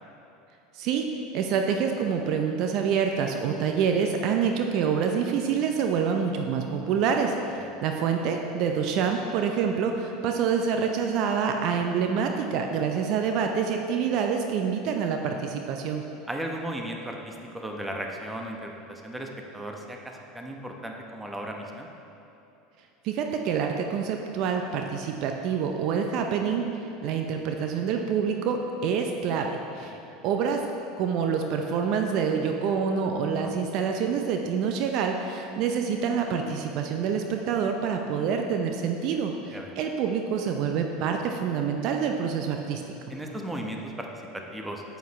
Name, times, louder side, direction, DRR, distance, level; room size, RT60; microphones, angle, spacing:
voice 1, 0.7-1.1 1.3-16.0 23.0-26.7 27.0-30.0 30.2-30.7 31.0-42.8, right 6 dB, 55° right, 4 dB, 0.6 m, -27 dB
voice 2, 16.3-21.9 29.8-30.0 33.4-33.6 39.5-39.7 43.1-44.8, right 1 dB, 10° right, 1 dB, 1.1 m, -36 dB
9.2 x 8.0 x 3.2 m, 2.9 s
hypercardioid pair, 75°, 0 cm